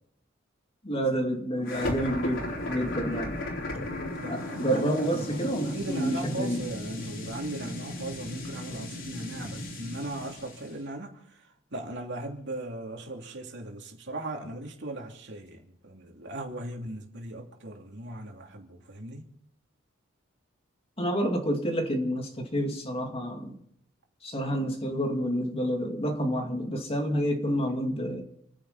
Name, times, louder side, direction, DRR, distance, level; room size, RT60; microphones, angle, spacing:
voice 1, 0.8-3.4 4.3-6.7 21.0-23.6 24.2-28.2, equal, 30° left, 2.5 m, -29 dB
trueno y lluvia, 1.6-10.8, left 1 dB, 65° left, 4.3 m, -36 dB
voice 2, 4.0-19.2, right 1 dB, 60° right, 2.8 m, -38 dB
29.0 x 10.0 x 4.1 m
head